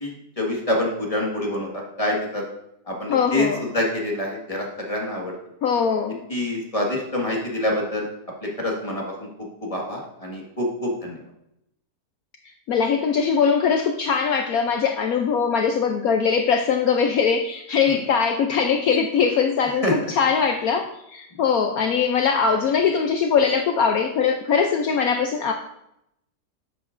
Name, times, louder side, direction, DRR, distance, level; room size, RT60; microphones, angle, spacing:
voice 1, 0.0-2.4 2.9-5.3 6.3-8.1 8.6-9.3 9.6-11.2 17.9-18.0 19.8-19.9, left 1 dB, 20° left, -2 dB, 1.7 m, -26 dB
voice 2, 3.1-3.7 5.6-6.2 12.7-25.5, left 6 dB, 65° left, 4 dB, 1.0 m, -21 dB
11.0 x 7.8 x 2.5 m, 0.81 s
omnidirectional pair, 1.8 m